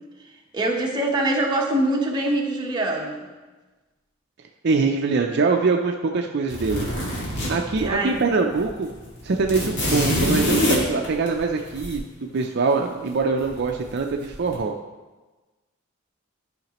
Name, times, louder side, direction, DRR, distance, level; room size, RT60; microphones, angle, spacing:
voice 1, 0.5-3.3 7.8-8.2, right 1 dB, 20° right, -1 dB, 1.1 m, -24 dB
voice 2, 4.6-6.9 7.5-8.9 9.2-12.0 12.3-14.7, right 4 dB, 55° right, 3 dB, 0.5 m, -23 dB
sound 1, 6.5-8.2 8.5-8.6 8.9-11.9 13.4-13.9 14.3-14.5, equal, 55° left, 2.0 m, -25 dB
12.0 x 5.7 x 3.0 m, 1.2 s
head